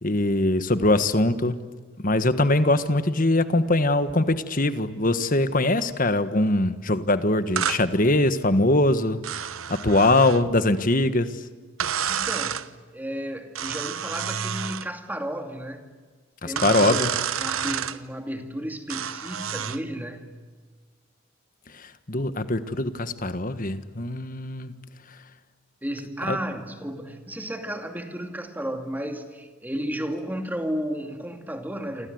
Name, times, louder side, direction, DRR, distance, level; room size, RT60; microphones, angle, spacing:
voice 1, 0.0-1.6 2.0-9.2 9.7-11.4 16.4-17.1 21.7-24.7 26.3-26.4, left 2 dB, 40° left, 1.5 m, -22 dB
sound 1, 7.6-7.8 9.2-10.4 11.8-12.7 13.5-14.9 16.6-18.0 18.9-19.8, right 8 dB, 80° right, 1.1 m, -29 dB
voice 2, 12.1-15.9 16.4-17.1 17.4-20.3 25.8-32.1, equal, 10° right, 2.5 m, -33 dB
28.5 x 26.0 x 8.0 m
head